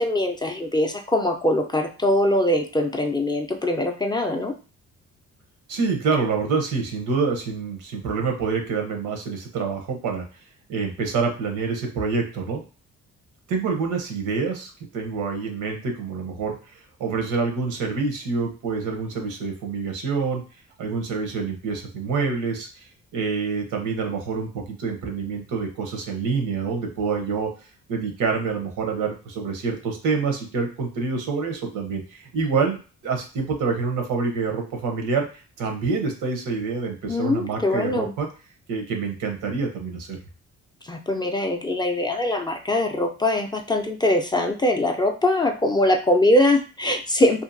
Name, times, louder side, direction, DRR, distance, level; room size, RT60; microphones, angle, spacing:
voice 1, 0.0-4.5 37.1-38.1 40.9-47.4, left 1 dB, 15° left, 3 dB, 0.4 m, -22 dB
voice 2, 5.7-10.2 10.7-12.6 13.5-20.4 20.8-27.5 27.9-38.3 38.7-40.2, right 4 dB, 85° right, 3 dB, 0.8 m, -27 dB
2.7 x 2.5 x 2.5 m, 0.35 s
cardioid pair, 90°, 30 cm